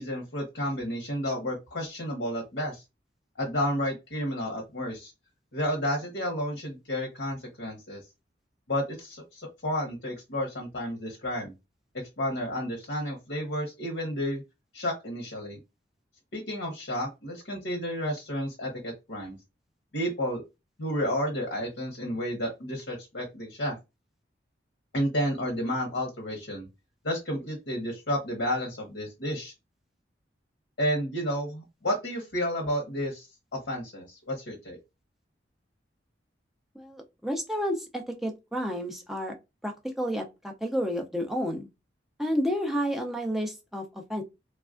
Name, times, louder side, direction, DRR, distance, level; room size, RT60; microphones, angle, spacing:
voice 1, 0.0-2.8 3.4-5.1 5.5-8.0 8.7-11.5 12.2-14.4 14.7-15.6 16.3-19.4 19.9-20.4 20.8-23.8 24.9-26.7 27.0-29.5 30.8-33.3 33.5-34.8, equal, 70° left, 0.9 m, -31 dB
voice 2, 36.8-39.3 39.6-41.7 42.2-44.2, equal, ahead, 0.5 m, -31 dB
3.2 x 2.3 x 2.4 m
head